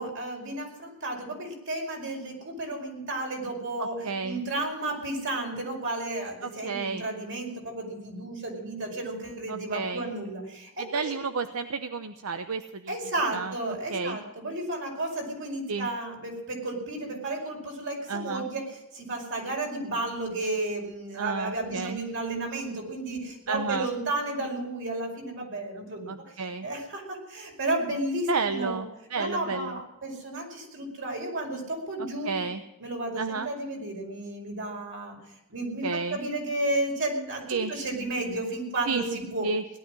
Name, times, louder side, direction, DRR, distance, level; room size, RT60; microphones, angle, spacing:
voice 1, 0.0-11.0 12.9-26.4 26.6-28.8 29.1-32.5 32.8-35.2 35.5-39.5, right 2 dB, 60° right, 1 dB, 5.1 m, -33 dB
voice 2, 3.8-4.4 6.4-7.1 9.5-10.1 10.8-12.9 13.3-13.5 13.9-14.2 15.7-15.9 18.1-18.5 21.1-22.0 23.5-23.9 26.1-26.7 28.3-29.8 32.2-32.6 33.2-33.5 35.8-36.2 37.5-37.7 38.9-39.0 39.4-39.6, right 4 dB, 85° right, 10 dB, 0.8 m, -31 dB
18.0 x 12.0 x 6.3 m, 0.93 s
head